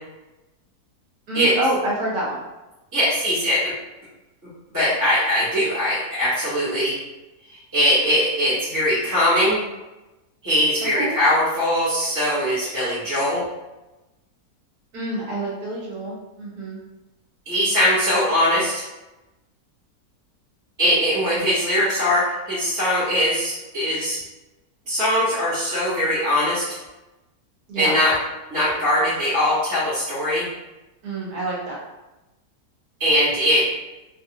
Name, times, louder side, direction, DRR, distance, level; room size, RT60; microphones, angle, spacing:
voice 1, 1.3-2.4 10.9-11.2 14.9-16.8 27.7-28.0 31.0-31.8, right 1 dB, 70° right, -5 dB, 1.5 m, -27 dB
voice 2, 2.9-3.7 4.7-6.9 7.7-9.6 10.4-13.4 17.4-18.8 20.8-24.2 24.9-26.7 27.7-28.1 28.5-30.4 33.0-33.7, equal, 15° right, -13 dB, 1.0 m, -21 dB
3.1 x 2.4 x 2.9 m, 1.0 s
omnidirectional pair, 1.7 m